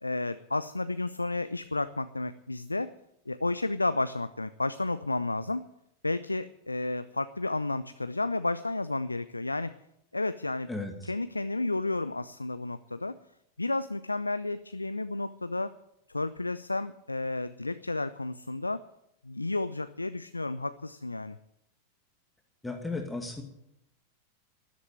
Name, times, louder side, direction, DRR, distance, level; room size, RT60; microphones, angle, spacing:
voice 1, 0.0-2.9 3.3-5.7 6.0-9.7 10.1-10.7 11.0-13.2 13.6-15.7 16.1-18.8 19.2-21.4, left 2 dB, 85° left, 13 dB, 0.5 m, -32 dB
voice 2, 10.7-11.1 22.6-23.4, left 3 dB, 5° left, 3 dB, 2.1 m, -35 dB
13.0 x 11.5 x 9.1 m, 0.80 s
figure-of-eight pair, 90°, 0 cm